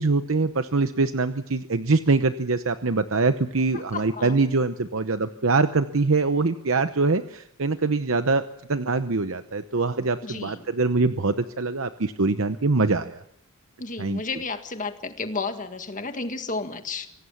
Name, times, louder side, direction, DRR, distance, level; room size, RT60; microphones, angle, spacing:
voice 1, 0.0-8.4 8.7-13.2 14.0-14.2, right 3 dB, 60° right, 10 dB, 0.9 m, -23 dB
voice 2, 3.6-4.4 10.2-10.6 13.8-17.1, left 3 dB, 35° left, 7 dB, 1.8 m, -32 dB
25.5 x 18.0 x 7.2 m, 0.73 s
head